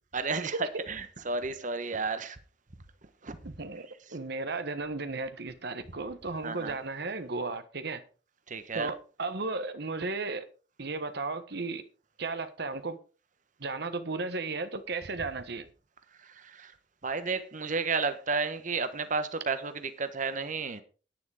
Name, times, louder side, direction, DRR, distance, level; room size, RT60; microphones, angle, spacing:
voice 1, 0.1-2.4 3.2-3.4 6.4-6.8 8.5-8.9 16.2-16.7 17.0-20.8, right 4 dB, 45° right, 1.2 m, -32 dB
voice 2, 3.4-8.0 8.7-10.5 10.8-11.8 12.2-13.0 13.6-15.7, right 3 dB, 65° right, 1.2 m, -35 dB
10.5 x 10.0 x 4.9 m
head